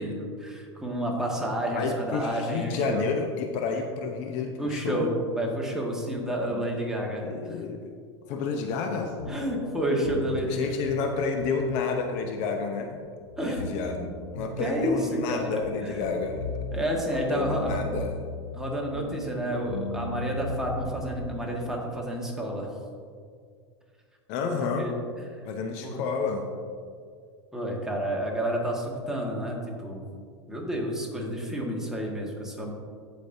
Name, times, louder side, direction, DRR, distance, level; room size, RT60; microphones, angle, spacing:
voice 1, 0.0-3.1 4.6-7.6 9.2-10.7 13.4-13.6 14.0-14.1 14.6-16.1 16.7-17.8 18.5-22.7 24.4-24.9 25.3-25.4 25.8-26.0 27.5-30.0 30.5-32.7, right 1 dB, 5° right, -2 dB, 1.7 m, -30 dB
voice 2, 1.7-5.1 6.5-7.0 7.2-7.9 8.3-9.1 10.5-13.0 13.6-16.4 17.1-18.1 24.3-24.9 25.4-26.4, left 5 dB, 55° left, 4 dB, 0.8 m, -30 dB
sound 1, 9.2-21.6, left 2 dB, 85° left, 1.5 m, -38 dB
14.0 x 5.1 x 2.7 m, 2.1 s
hypercardioid pair, 100°, 15 cm